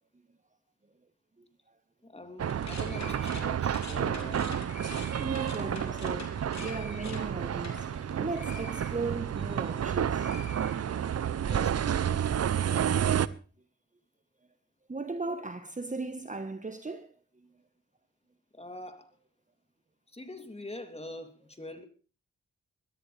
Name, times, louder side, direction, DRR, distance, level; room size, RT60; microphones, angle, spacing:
voice 1, 2.0-4.6 5.6-6.0 11.3-12.3 15.3-15.4 18.5-19.1 20.1-21.9, left 1 dB, 20° left, 3.1 m, -44 dB
sound 1, 2.4-13.3, right 9 dB, 50° right, 0.7 m, -30 dB
sound 2, 2.5-9.8 10.1-11.3, left 4 dB, 60° left, 3.3 m, -46 dB
voice 2, 5.2-6.3 6.6-7.9 8.2-10.3 14.9-17.1, right 3 dB, 25° right, 1.3 m, -36 dB
20.5 x 14.0 x 3.4 m
supercardioid pair, 45°, 31 cm